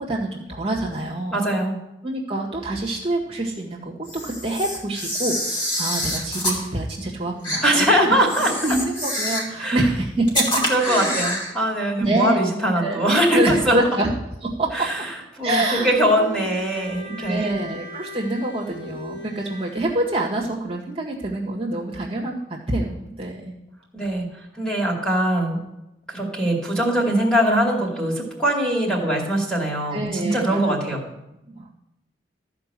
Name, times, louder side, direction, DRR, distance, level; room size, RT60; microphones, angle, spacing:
voice 1, 0.0-1.4 2.0-8.1 8.6-11.2 12.0-12.4 12.8-13.0 13.3-14.1 14.4-14.7 15.4-16.5 17.2-23.5 29.9-30.8 31.5-31.7, right 1 dB, 30° right, -3 dB, 1.8 m, -26 dB
voice 2, 1.3-1.8 7.6-8.5 9.6-9.8 10.7-13.8 14.7-15.1 15.3-17.5 23.9-24.3 24.6-25.6 26.1-31.0, right 1 dB, 5° left, -3 dB, 2.4 m, -21 dB
Camera, 4.1-6.6 7.4-7.6 8.3-9.6 10.3-11.5, left 1 dB, 25° left, 2.8 m, -26 dB
Bowed string instrument, 15.6-20.1, left 1 dB, 90° left, 1.5 m, -38 dB
14.0 x 5.2 x 7.6 m, 0.90 s
head